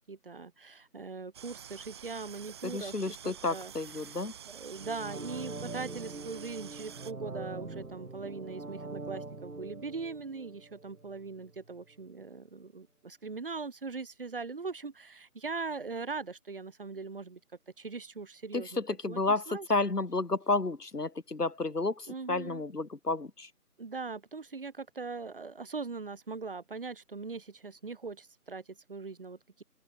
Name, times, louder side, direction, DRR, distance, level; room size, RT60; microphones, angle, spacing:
voice 1, 0.1-3.7 4.4-17.4 17.8-19.7 22.1-22.6 23.8-29.6, right 4 dB, 35° right, 5.8 m, -41 dB
sound 1, 1.3-7.1, right 9 dB, 15° right, 6.5 m, -48 dB
voice 2, 2.6-4.3 18.5-23.5, left 3 dB, 80° left, 1.9 m, -31 dB
sound 2, 4.7-11.6 11.9-12.0, right 3 dB, 65° right, 2.5 m, -43 dB
open air
figure-of-eight pair, 160°, 46 cm